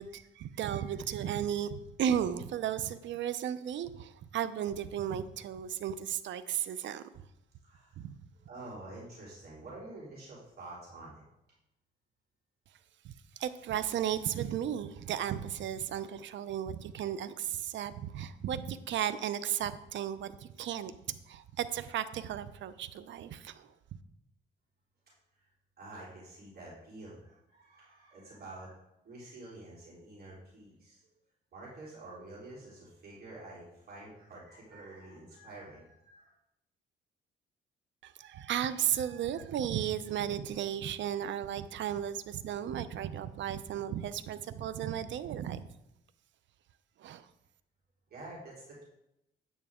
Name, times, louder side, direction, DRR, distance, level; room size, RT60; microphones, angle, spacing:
voice 1, 0.0-7.0 8.0-8.2 13.0-23.7 38.0-45.6 47.0-47.3, right 10 dB, 70° right, 13 dB, 0.7 m, -35 dB
voice 2, 7.6-8.0 8.3-11.2 13.3-13.4 25.8-28.8 29.0-31.0 31.5-36.3 48.1-48.8, right 2 dB, 50° right, -6 dB, 3.9 m, -48 dB
9.4 x 9.2 x 3.7 m, 0.85 s
cardioid pair, 90°, 20 cm